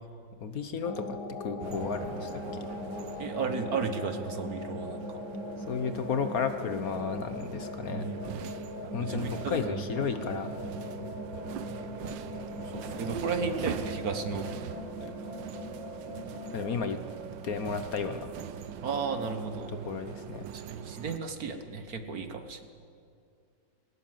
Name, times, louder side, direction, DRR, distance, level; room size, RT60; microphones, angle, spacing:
voice 1, 0.4-2.6 5.7-8.1 8.9-10.5 16.5-17.0 17.4-18.3 19.7-20.5, left 6 dB, 55° left, 9 dB, 1.3 m, -33 dB
sound 1, 0.8-16.9, left 2 dB, 85° left, 2.8 m, -40 dB
sound 2, 1.6-21.2, right 9 dB, 85° right, 1.5 m, -42 dB
voice 2, 3.2-5.2 7.9-8.5 9.0-9.9 12.7-14.5 15.0-15.1 18.8-19.7 20.5-22.6, right 5 dB, 55° right, 7 dB, 1.7 m, -34 dB
21.0 x 18.5 x 7.5 m, 2.3 s
omnidirectional pair, 2.0 m